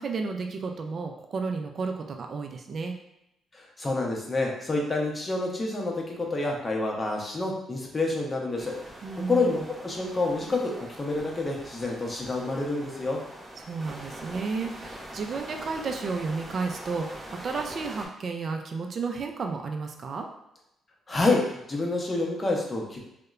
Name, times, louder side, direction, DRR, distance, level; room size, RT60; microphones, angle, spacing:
voice 1, 0.0-3.0 9.0-9.6 13.6-20.3, right 4 dB, 50° right, 4 dB, 0.3 m, -32 dB
voice 2, 3.5-9.0 9.3-13.2 21.1-23.0, left 2 dB, 25° left, 0 dB, 0.6 m, -28 dB
sound 1, 8.6-18.1, right 1 dB, 15° right, 0.8 m, -43 dB
2.8 x 2.1 x 2.3 m, 0.84 s
cardioid pair, 90°, 0 cm